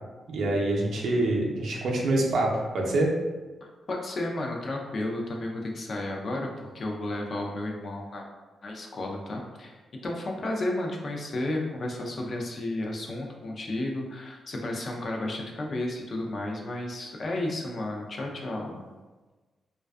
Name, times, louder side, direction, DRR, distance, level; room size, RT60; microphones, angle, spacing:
voice 1, 0.3-3.1, right 2 dB, 75° right, -1 dB, 0.5 m, -25 dB
voice 2, 3.6-8.3 8.6-18.9, left 1 dB, 45° left, 1 dB, 0.4 m, -33 dB
2.4 x 2.2 x 2.3 m, 1.2 s
cardioid pair, 110°, 0 cm